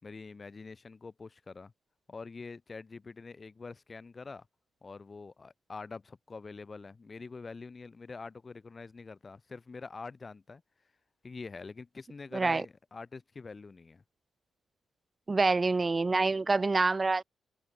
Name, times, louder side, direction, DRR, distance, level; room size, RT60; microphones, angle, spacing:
voice 1, 0.0-1.7 2.1-4.5 4.8-10.6 11.2-14.0, left 4 dB, 25° left, 5.9 m, -45 dB
voice 2, 12.3-12.6 15.3-17.2, right 3 dB, 20° right, 2.0 m, -26 dB
open air
cardioid pair, 165°, 0 cm